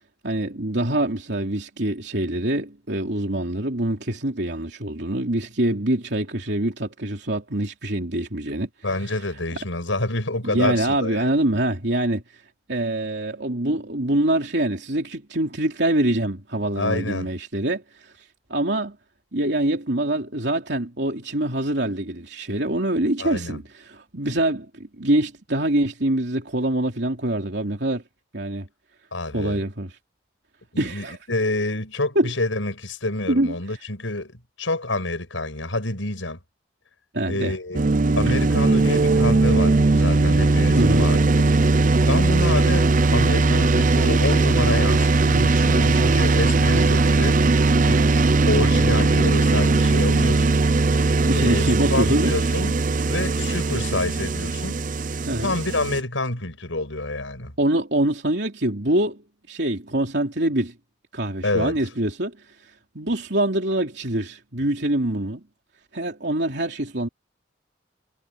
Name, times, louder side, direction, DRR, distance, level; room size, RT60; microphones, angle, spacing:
voice 1, 0.2-8.7 9.0-9.2 10.4-12.4 12.7-19.0 19.3-28.0 28.3-28.7 29.3-29.9 30.8-31.2 32.1-32.3 33.3-33.5 37.1-37.5 40.7-41.1 46.7-47.0 51.3-52.4 55.3-55.5 57.6-59.2 59.5-60.7 61.1-65.4 65.9-67.1, right 1 dB, 60° right, 3.4 m, -25 dB
voice 2, 8.8-11.2 16.8-17.3 23.2-23.6 29.1-29.6 30.7-36.4 37.3-37.8 38.2-41.2 42.0-47.4 47.8-48.2 48.5-50.6 51.3-52.8 53.1-54.8 55.4-57.5 61.4-61.7, left 2 dB, 85° left, 7.1 m, -27 dB
sound 1, 37.7-56.0, right 3 dB, 45° right, 0.6 m, -19 dB
head